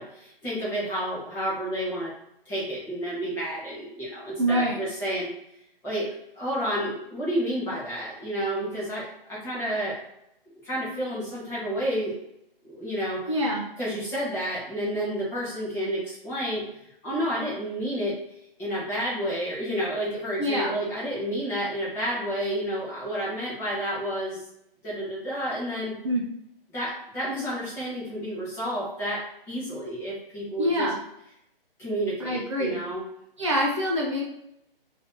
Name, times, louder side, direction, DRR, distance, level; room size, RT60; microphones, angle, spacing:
voice 1, 0.0-2.1 2.5-5.3 5.8-9.9 10.6-12.1 12.6-13.2 13.8-16.6 17.0-18.1 18.6-24.4 24.8-25.9 26.7-30.9 31.8-33.0, equal, 10° left, -9 dB, 0.8 m, -30 dB
voice 2, 4.4-4.8 13.3-13.6 20.4-20.7 26.0-26.2 30.6-31.0 32.2-32.8 33.4-34.2, equal, 30° right, -3 dB, 0.6 m, -25 dB
2.8 x 2.7 x 3.5 m, 0.79 s
hypercardioid pair, 155°, 29 cm